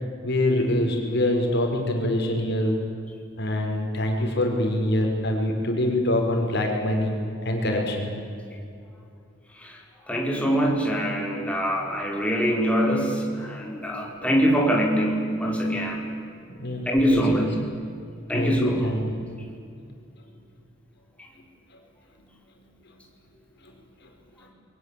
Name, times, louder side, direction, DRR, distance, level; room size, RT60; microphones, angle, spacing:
voice 1, 0.2-2.8 3.4-7.1 7.4-8.1 16.5-17.4 18.3-19.2 24.4-24.5, left 1 dB, 55° left, 2 dB, 5.5 m, -24 dB
voice 2, 10.1-16.0 16.8-17.6 18.3-18.9, equal, 5° left, -1 dB, 5.1 m, -24 dB
28.5 x 23.5 x 8.6 m, 2.5 s
head